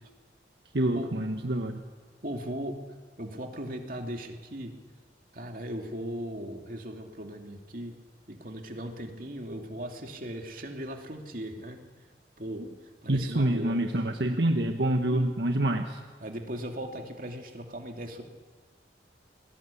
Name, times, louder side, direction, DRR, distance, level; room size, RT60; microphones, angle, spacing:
voice 1, 0.7-1.8 12.6-12.7 13.1-16.0, right 1 dB, 70° right, 4 dB, 1.4 m, -27 dB
voice 2, 2.2-2.8 3.2-4.8 5.3-8.0 8.3-11.8 12.4-12.7 13.0-13.8 16.2-18.2, equal, 50° right, 3 dB, 2.7 m, -38 dB
28.0 x 20.0 x 8.5 m, 1.4 s
head